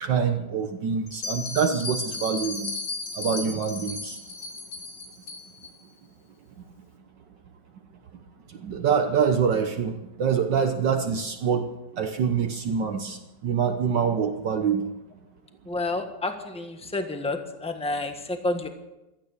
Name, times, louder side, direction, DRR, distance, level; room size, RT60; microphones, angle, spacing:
voice 1, 0.0-2.7 3.2-4.2 8.6-11.7 12.0-14.9, right 6 dB, 65° right, 6 dB, 1.6 m, -25 dB
Bell, 1.1-5.7, left 3 dB, 60° left, 2.8 m, -35 dB
voice 2, 15.7-18.7, left 2 dB, 5° left, 6 dB, 1.2 m, -30 dB
16.0 x 13.0 x 6.7 m, 0.97 s
omnidirectional pair, 2.2 m